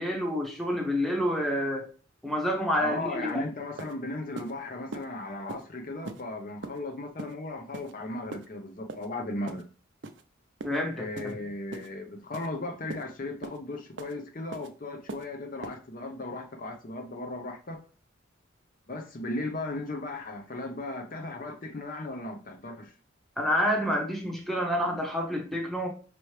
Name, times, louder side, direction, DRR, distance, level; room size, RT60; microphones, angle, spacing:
voice 1, 0.0-1.8 2.2-3.4 10.6-11.3 23.4-25.9, equal, ahead, 0.8 m, -28 dB
voice 2, 2.8-9.7 11.0-17.8 18.9-22.9, left 2 dB, 40° left, 0.6 m, -36 dB
sound 1, 3.3-3.4 3.8-3.9 4.4-4.5 4.9-5.1 5.5-5.6 6.1-6.2 6.6-6.8 7.2-7.3 7.7-7.9 8.3-8.5 8.9-9.1 9.5-9.6 10.0-10.2 10.6-10.8 11.2-11.3 11.7-11.9 12.3-12.5 12.9-13.0 13.4-13.6 14.0-14.1 14.5-14.7 15.1-15.3 15.6-15.8, right 3 dB, 60° right, 0.5 m, -40 dB
5.5 x 3.0 x 3.2 m
head